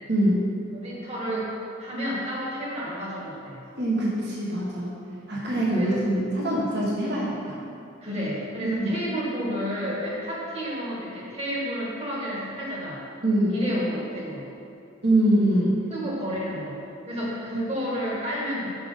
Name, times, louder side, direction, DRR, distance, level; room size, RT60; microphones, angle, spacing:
voice 1, 0.1-0.4 3.8-5.0 5.3-7.6 8.6-8.9 13.2-13.6 15.0-15.8, right 1 dB, 55° right, -5 dB, 1.3 m, -23 dB
voice 2, 0.7-1.5 1.8-3.6 5.3-5.4 5.8-6.0 8.0-13.0 13.5-14.4 15.9-16.8 17.1-18.7, equal, 35° right, -5 dB, 1.6 m, -31 dB
6.0 x 4.9 x 5.3 m, 2.6 s
head